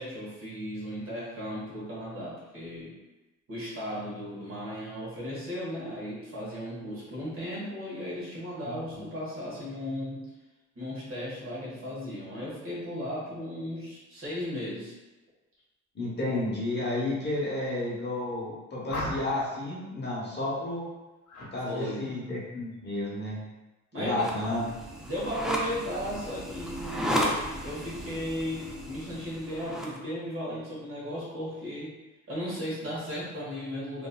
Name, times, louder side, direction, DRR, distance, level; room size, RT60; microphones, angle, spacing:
voice 1, 0.0-2.9 3.5-10.2 10.7-14.9 21.6-22.1 23.9-24.3 25.0-27.2 27.6-31.9 32.3-34.1, equal, 45° right, -7 dB, 1.4 m, -36 dB
voice 2, 15.9-20.8 21.5-23.4 24.0-24.7, left 2 dB, 35° left, -6 dB, 0.9 m, -31 dB
sound 1, 18.9-19.5 21.3-21.5 21.9-22.3, left 1 dB, 70° left, 0.9 m, -36 dB
sound 2, 24.1-30.0, equal, ahead, 0.4 m, -34 dB
3.0 x 2.6 x 2.3 m, 1.1 s
cardioid pair, 90°, 30 cm